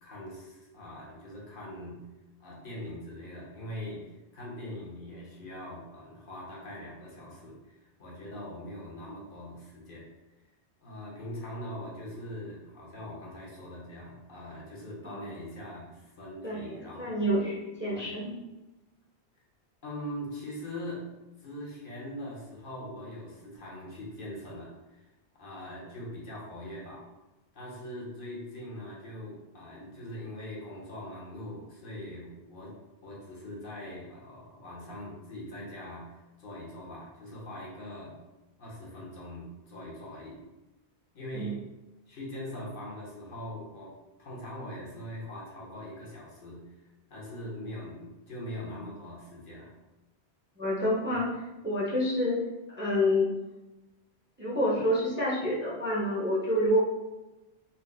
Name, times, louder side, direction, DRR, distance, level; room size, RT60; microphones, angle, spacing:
voice 1, 0.0-2.1 2.4-10.1 10.8-17.4 17.9-18.2 19.8-21.1 21.4-25.1 25.4-27.1 27.5-38.2 38.6-40.4 41.1-41.6 42.1-43.9 44.2-49.7 51.1-51.3, left 1 dB, 55° left, -4 dB, 1.0 m, -42 dB
voice 2, 17.0-18.3 41.3-41.5 50.6-51.3 51.6-52.3 52.8-53.3 54.4-56.9, left 1 dB, 15° right, -6 dB, 0.5 m, -27 dB
3.9 x 2.4 x 2.2 m, 1.0 s
omnidirectional pair, 1.1 m